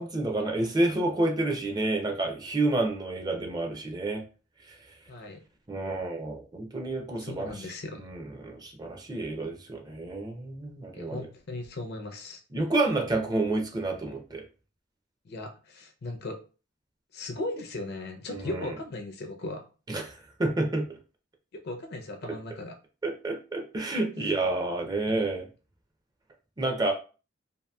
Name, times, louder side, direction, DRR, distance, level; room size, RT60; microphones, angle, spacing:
voice 1, 0.0-4.2 5.7-7.7 8.0-11.3 12.5-14.4 18.3-18.7 19.9-20.8 23.0-25.5 26.6-26.9, right 2 dB, 20° right, 2 dB, 0.5 m, -29 dB
voice 2, 5.1-5.4 7.2-8.0 10.9-12.4 15.2-16.4 17.1-19.6 21.5-22.8 24.2-24.3 25.1-25.3, left 2 dB, 55° left, 6 dB, 0.5 m, -37 dB
2.7 x 2.6 x 2.2 m, 0.35 s
head